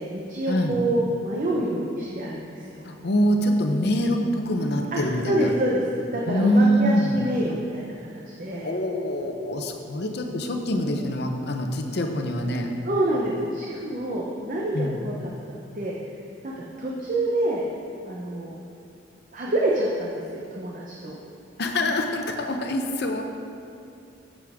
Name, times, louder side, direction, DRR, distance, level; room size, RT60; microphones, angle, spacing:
voice 1, 0.0-2.9 4.9-5.0 5.3-8.7 12.8-15.9 16.4-17.6 18.1-18.6 19.3-21.2, right 1 dB, 45° right, -3 dB, 0.8 m, -27 dB
voice 2, 2.8-5.5 6.3-7.2 8.6-12.7 14.7-15.0 21.6-23.2, equal, 60° left, 4 dB, 0.8 m, -24 dB
9.7 x 7.5 x 3.6 m, 2.6 s
head